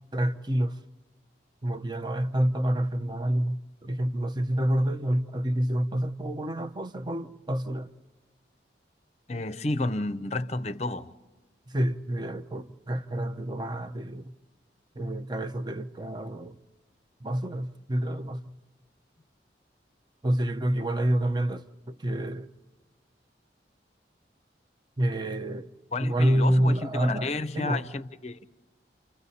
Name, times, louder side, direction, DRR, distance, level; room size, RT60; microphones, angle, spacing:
voice 1, 0.1-0.8 1.6-7.9 11.7-14.3 15.0-16.6 17.2-18.5 20.2-22.5 25.0-25.7 26.0-27.8, right 1 dB, 25° right, 0.7 m, -28 dB
voice 2, 9.3-11.1 25.9-28.4, left 2 dB, 35° left, 0.6 m, -31 dB
29.0 x 28.0 x 4.2 m
head